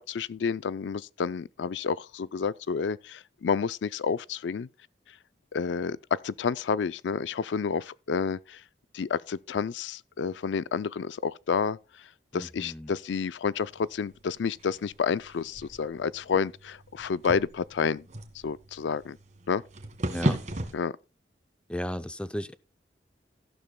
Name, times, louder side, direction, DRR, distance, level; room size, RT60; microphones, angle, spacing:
voice 1, 0.0-4.7 5.5-8.6 8.9-11.8 12.3-18.0 18.4-19.2 19.5-19.6 20.7-20.9, left 6 dB, 90° left, 0.4 m, -30 dB
voice 2, 12.3-12.9 20.0-20.4 21.7-22.5, left 1 dB, 5° left, 0.5 m, -35 dB
sound 1, 13.6-20.7, right 1 dB, 40° right, 1.6 m, -36 dB
14.5 x 12.0 x 2.2 m
head